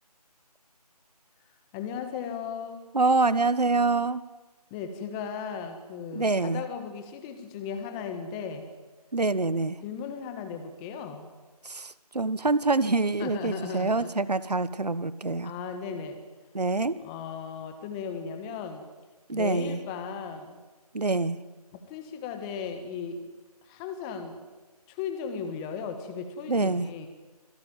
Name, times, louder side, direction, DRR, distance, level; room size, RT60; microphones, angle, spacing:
voice 1, 1.7-2.8 4.7-8.7 9.8-11.3 13.2-14.1 15.4-16.2 17.0-18.8 19.3-20.6 21.9-23.3 23.6-24.4 24.9-27.1, left 6 dB, 10° left, 7 dB, 1.4 m, -36 dB
voice 2, 2.9-4.2 6.1-6.6 9.1-9.8 11.6-15.5 16.5-16.9 19.3-19.8 20.9-21.4 26.5-26.9, right 3 dB, 80° right, 17 dB, 1.4 m, -25 dB
26.0 x 18.0 x 9.2 m, 1.2 s
figure-of-eight pair, 160°, 20 cm